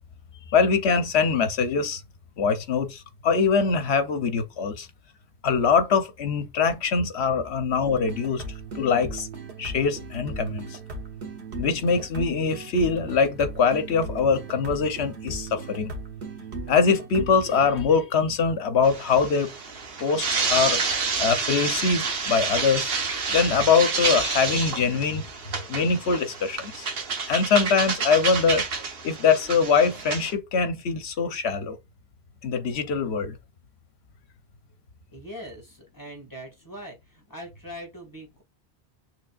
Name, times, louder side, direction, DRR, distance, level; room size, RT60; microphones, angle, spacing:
voice 1, 0.5-2.0 2.4-4.9 5.4-8.4 8.7-9.3 9.6-10.8 11.6-15.9 16.7-19.5 20.0-20.8 21.2-22.9 23.3-25.2 25.7-26.9 27.3-28.7 29.0-31.8 32.4-33.4, left 5 dB, 75° left, 1.1 m, -23 dB
sound 1, 7.9-17.8, right 3 dB, 80° right, 1.4 m, -38 dB
sound 2, 18.8-30.3, right 5 dB, 65° right, 1.2 m, -29 dB
voice 2, 35.1-38.4, equal, 20° left, 2.0 m, -41 dB
6.4 x 3.2 x 2.5 m
omnidirectional pair, 1.1 m